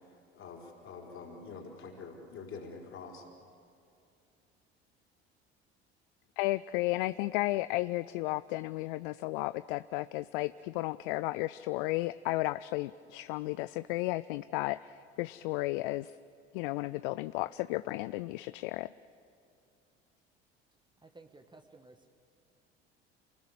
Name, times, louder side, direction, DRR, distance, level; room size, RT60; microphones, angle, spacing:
voice 1, 0.3-3.2, left 4 dB, 40° left, 1 dB, 4.6 m, -46 dB
voice 2, 6.4-16.1 16.5-18.9, left 19 dB, 55° left, 17 dB, 0.5 m, -33 dB
voice 3, 21.0-22.1, right 3 dB, 15° right, 6 dB, 1.6 m, -55 dB
28.5 x 20.0 x 7.6 m, 2.6 s
figure-of-eight pair, 60°, 32 cm